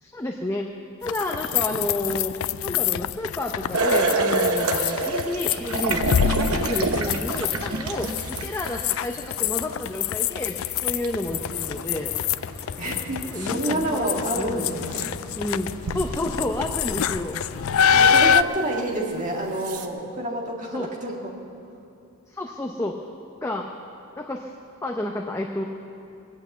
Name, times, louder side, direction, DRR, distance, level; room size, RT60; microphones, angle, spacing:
voice 1, 0.0-0.7 1.0-2.3 2.6-12.1 13.3-14.8 15.4-17.4 17.9-18.1 20.7-20.9 22.3-23.0 23.4-23.7 24.2-24.5 24.8-25.6, left 1 dB, 15° left, 1 dB, 0.6 m, -30 dB
sound 1, 1.0-18.4, left 8 dB, 70° left, 0.3 m, -26 dB
sound 2, 3.7-9.0 11.0-11.1 14.0-14.1 14.9-15.1 15.8-17.5 17.9-18.0 18.9-19.0 19.5-19.9, right 3 dB, 85° right, 1.0 m, -26 dB
sound 3, 11.2-18.5, left 1 dB, 50° left, 2.3 m, -42 dB
voice 2, 12.8-15.1 17.9-21.3, right 1 dB, 35° right, -1 dB, 2.0 m, -28 dB
21.0 x 8.5 x 7.9 m, 2.7 s
head